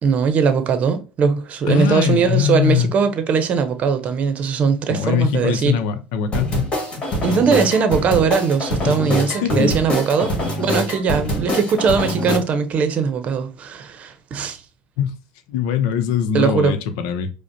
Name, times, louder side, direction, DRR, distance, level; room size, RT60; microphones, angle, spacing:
voice 1, 0.0-5.8 7.2-14.6 16.3-16.7, right 5 dB, 45° right, 0.7 m, -20 dB
voice 2, 1.7-2.9 4.9-6.7 8.8-9.0 9.3-9.8 15.0-15.1 15.5-17.3, left 8 dB, 80° left, 0.6 m, -21 dB
sound 1, 6.3-12.4, left 1 dB, 30° left, 1.7 m, -24 dB
4.9 x 2.1 x 2.7 m
supercardioid pair, 100°, 3 cm